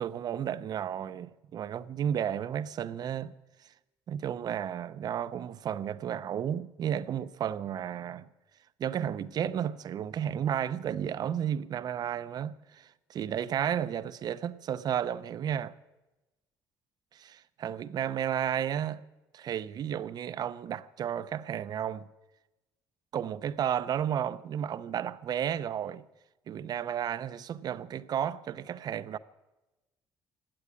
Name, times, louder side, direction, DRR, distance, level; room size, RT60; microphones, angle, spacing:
voice 1, 0.0-3.3 4.1-8.3 8.8-15.7 17.1-19.0 19.3-22.1 23.1-26.0 26.5-29.2, right 9 dB, 50° right, 0.7 m, -33 dB
16.5 x 8.7 x 9.8 m
cardioid pair, 105°, 8 cm